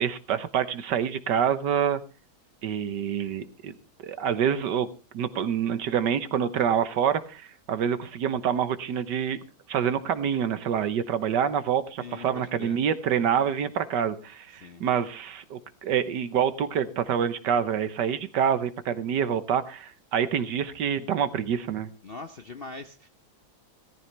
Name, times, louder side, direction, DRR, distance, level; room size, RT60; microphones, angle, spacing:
voice 1, 0.0-2.0 2.6-3.7 4.0-4.9 5.1-9.4 9.7-21.9, right 8 dB, 70° right, 13 dB, 1.5 m, -26 dB
voice 2, 12.0-12.8 14.5-14.9 22.0-23.1, left 3 dB, 50° left, 7 dB, 0.7 m, -42 dB
17.5 x 14.0 x 3.3 m, 0.31 s
omnidirectional pair, 2.0 m